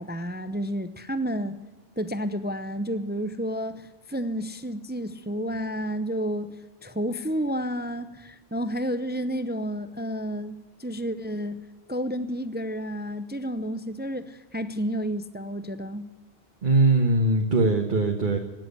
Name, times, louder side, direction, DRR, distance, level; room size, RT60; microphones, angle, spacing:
voice 1, 0.0-1.6 2.0-6.5 6.8-11.6 11.9-16.1, equal, 10° right, 11 dB, 0.6 m, -31 dB
voice 2, 16.6-18.4, right 2 dB, 45° right, 3 dB, 1.5 m, -21 dB
18.0 x 7.7 x 9.8 m, 1.2 s
omnidirectional pair, 1.1 m